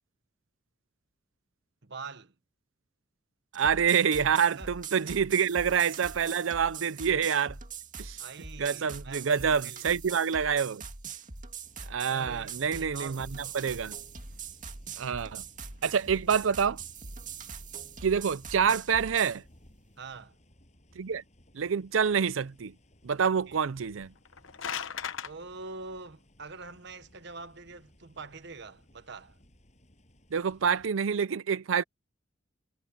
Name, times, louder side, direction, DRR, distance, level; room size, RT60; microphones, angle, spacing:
voice 1, 1.8-2.3 4.6-4.7 8.2-10.0 12.1-13.6 20.0-20.4 23.5-23.6 25.2-29.4, right 4 dB, 60° right, 1.2 m, -44 dB
sound 1, 3.5-19.4, right 5 dB, 40° right, 2.2 m, -42 dB
voice 2, 3.5-7.6 8.0-8.2 8.6-10.8 11.9-13.3 13.5-14.0 15.0-15.4 15.8-16.8 18.0-19.4 21.0-21.2 21.5-22.7 23.0-24.1 30.3-31.8, right 7 dB, 90° right, 0.5 m, -27 dB
sound 2, 11.6-30.9, equal, 40° left, 7.3 m, -58 dB
sound 3, 24.2-25.3, left 8 dB, 85° left, 1.0 m, -36 dB
head